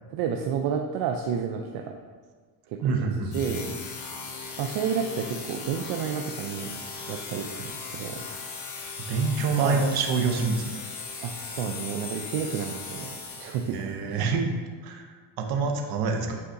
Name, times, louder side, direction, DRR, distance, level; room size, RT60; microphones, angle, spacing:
voice 1, 0.1-2.0 2.7-3.1 3.3-3.7 4.6-6.7 7.1-8.3 9.6-9.9 11.2-13.1 13.4-14.2, right 7 dB, 65° right, 4 dB, 0.6 m, -30 dB
voice 2, 2.8-3.7 9.1-10.6 13.6-14.6 14.8-15.1 15.4-16.4, right 4 dB, 50° right, 3 dB, 0.9 m, -26 dB
sound 1, 3.3-13.9, left 4 dB, 75° left, 1.5 m, -38 dB
8.4 x 4.8 x 2.6 m, 1.5 s
cardioid pair, 140°, 47 cm